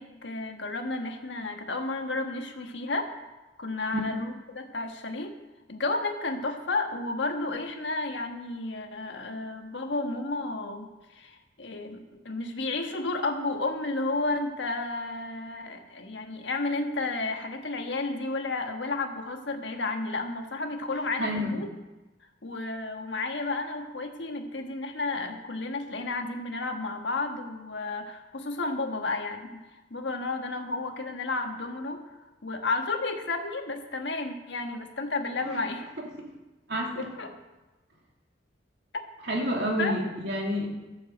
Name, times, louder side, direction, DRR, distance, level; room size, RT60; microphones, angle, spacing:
voice 1, 0.0-3.1 3.6-5.3 5.7-21.7 22.4-29.6 29.9-32.0 32.4-35.9 37.2-37.3 39.8-40.0, left 3 dB, 75° left, 4 dB, 1.4 m, -32 dB
voice 2, 21.2-21.5 35.4-35.6 36.2-36.3 36.7-37.1 39.2-40.7, equal, 65° right, -1 dB, 2.7 m, -29 dB
13.0 x 7.2 x 7.9 m, 1.1 s
head